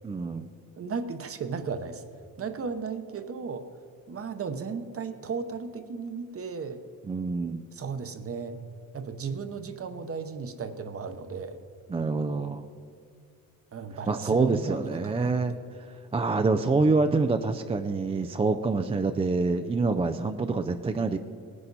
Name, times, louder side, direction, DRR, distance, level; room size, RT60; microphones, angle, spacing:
voice 1, 0.0-0.5 7.1-7.6 11.9-12.6 14.1-15.5 16.1-21.2, right 3 dB, 15° right, 8 dB, 0.3 m, -26 dB
voice 2, 0.8-2.0 2.4-3.6 4.1-6.8 7.7-8.6 8.9-11.6 13.7-15.3, right 5 dB, 40° right, 9 dB, 0.9 m, -35 dB
18.0 x 9.9 x 4.1 m, 2.5 s
cardioid pair, 135°, 36 cm